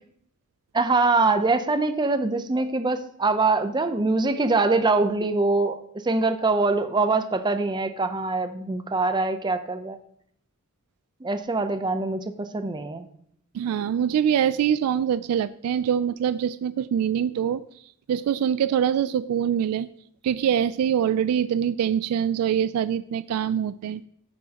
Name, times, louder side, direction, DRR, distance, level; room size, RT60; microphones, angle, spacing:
voice 1, 0.7-5.8 6.0-10.0 11.2-13.0, right 3 dB, 20° right, 9 dB, 0.6 m, -23 dB
voice 2, 13.5-17.6 18.1-19.9 20.2-24.0, right 8 dB, 90° right, 15 dB, 0.3 m, -24 dB
13.5 x 6.2 x 2.9 m, 0.68 s
head